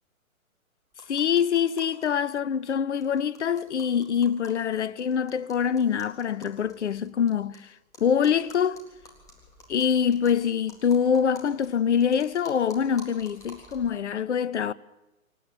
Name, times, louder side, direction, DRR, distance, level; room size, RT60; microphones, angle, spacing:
sound 1, 0.9-2.1 2.4-2.5 2.6-2.7 3.0-7.6 7.9-13.9, left 1 dB, 10° left, 3.8 m, -50 dB
voice 1, 1.1-7.6 8.0-8.8 9.7-14.7, left 7 dB, 55° left, 0.8 m, -25 dB
27.0 x 14.0 x 8.8 m
figure-of-eight pair, 135°, 42 cm